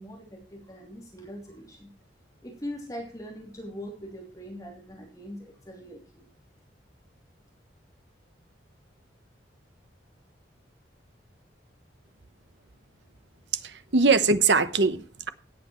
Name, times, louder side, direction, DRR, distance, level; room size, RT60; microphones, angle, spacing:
voice 1, 0.0-1.9 2.4-6.3, equal, 20° left, -1 dB, 2.9 m, -41 dB
voice 2, 13.6-15.3, right 4 dB, 70° right, 12 dB, 1.0 m, -22 dB
17.5 x 8.6 x 3.1 m, 0.37 s
head